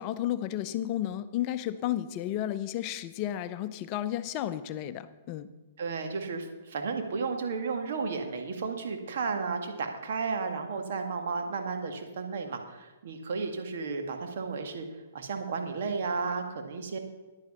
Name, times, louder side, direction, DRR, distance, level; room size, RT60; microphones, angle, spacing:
voice 1, 0.0-5.5, left 12 dB, 40° left, 12 dB, 0.7 m, -32 dB
voice 2, 5.8-14.9 15.1-17.0, right 4 dB, 60° right, 5 dB, 1.9 m, -33 dB
10.5 x 9.7 x 5.6 m, 1.2 s
figure-of-eight pair, 115°, 0 cm